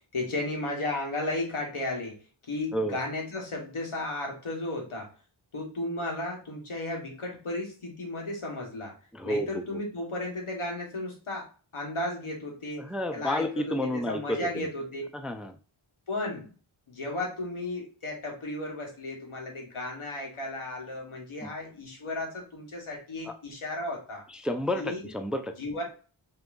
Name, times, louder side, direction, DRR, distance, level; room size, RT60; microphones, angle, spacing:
voice 1, 0.1-2.2 2.5-5.1 5.5-9.0 9.2-12.9 13.1-15.0 16.1-16.5 16.9-24.2 24.7-25.1 25.6-25.8, left 2 dB, 85° left, 0 dB, 1.5 m, -34 dB
voice 2, 9.1-9.8 12.8-14.7 15.1-15.6 21.4-21.5 23.3-23.4 24.3-25.5, left 1 dB, ahead, 8 dB, 0.4 m, -31 dB
5.4 x 3.0 x 2.6 m, 0.37 s
cardioid pair, 45°, 49 cm